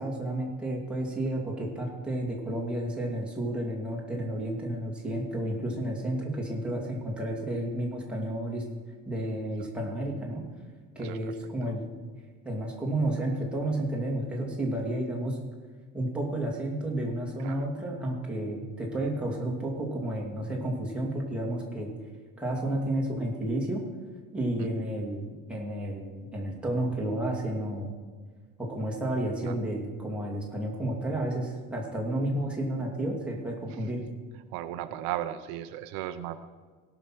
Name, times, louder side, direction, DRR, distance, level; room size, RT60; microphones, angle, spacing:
voice 1, 0.0-8.6 9.1-10.4 11.0-11.9 12.4-15.4 15.9-21.9 22.4-23.8 24.3-27.9 28.6-34.0, right 1 dB, 5° right, -3 dB, 2.3 m, -31 dB
voice 2, 11.0-11.3 11.6-11.7 17.4-17.7 29.4-29.6 33.8-33.9 34.5-36.5, right 12 dB, 90° right, 10 dB, 0.8 m, -36 dB
17.5 x 6.0 x 6.2 m, 1.5 s
cardioid pair, 150°, 35 cm